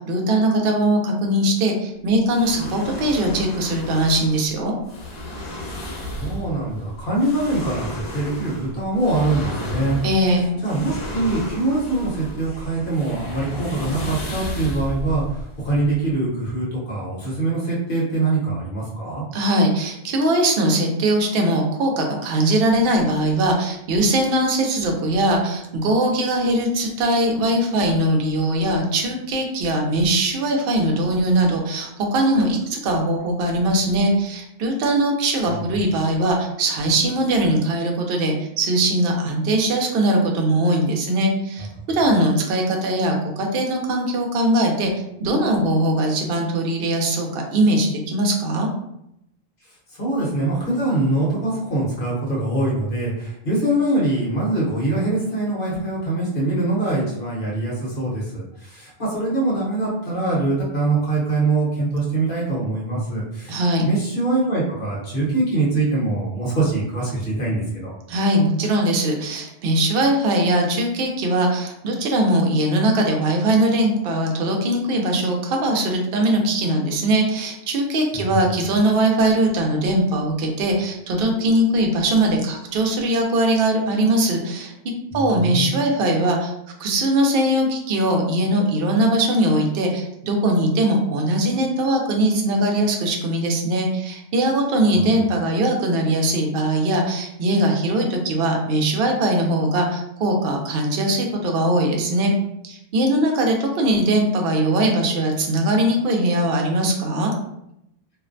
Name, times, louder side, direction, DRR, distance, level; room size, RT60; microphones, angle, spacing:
voice 1, 0.1-4.7 10.0-10.5 19.3-44.9 45.2-48.7 63.5-63.9 68.1-84.7 85.1-86.5 86.8-102.3 102.6-107.3, right 1 dB, 65° right, 2 dB, 0.7 m, -20 dB
sound 1, 2.2-16.1, left 1 dB, 85° left, 1.0 m, -33 dB
voice 2, 6.1-10.0 10.6-19.2 50.0-68.0 78.3-78.4 85.1-85.7, right 2 dB, 60° left, -5 dB, 1.0 m, -23 dB
2.5 x 2.1 x 2.5 m, 0.80 s
omnidirectional pair, 1.1 m